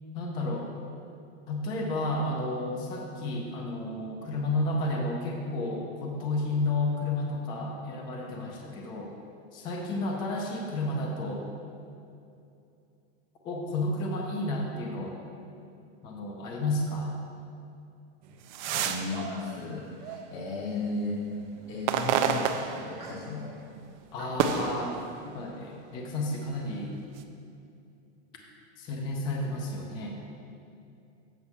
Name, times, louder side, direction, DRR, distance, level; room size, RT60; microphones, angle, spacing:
voice 1, 0.1-0.7 1.5-9.1 9.5-11.5 13.4-15.2 16.0-17.2 24.1-25.0 25.2-27.0 28.8-30.2, left 2 dB, 15° left, 0 dB, 0.4 m, -31 dB
sound 1, 18.3-20.7 21.1-23.4 23.8-25.6 26.3-27.2, right 8 dB, 45° right, 0.5 m, -31 dB
voice 2, 18.6-21.2 21.7-23.7, left 3 dB, 35° left, -4 dB, 0.9 m, -35 dB
7.9 x 5.3 x 5.7 m, 2.6 s
supercardioid pair, 175°, 32 cm